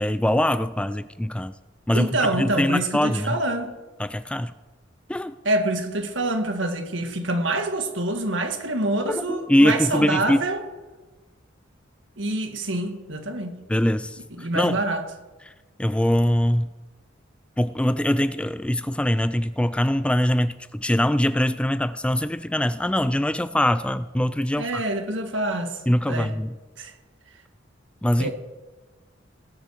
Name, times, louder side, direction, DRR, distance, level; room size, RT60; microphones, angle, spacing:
voice 1, 0.0-1.5 1.9-3.4 4.0-4.5 5.1-5.3 9.1-10.4 13.7-14.8 15.8-16.7 17.6-24.8 25.9-26.5 28.0-28.3, left 1 dB, 5° left, 13 dB, 0.3 m, -23 dB
voice 2, 1.9-3.7 5.5-10.6 12.2-13.6 14.3-15.0 24.6-25.8 26.1-26.3 26.8-26.9 28.2-28.3, right 2 dB, 75° right, 5 dB, 1.9 m, -26 dB
18.5 x 8.7 x 6.3 m, 1.2 s
head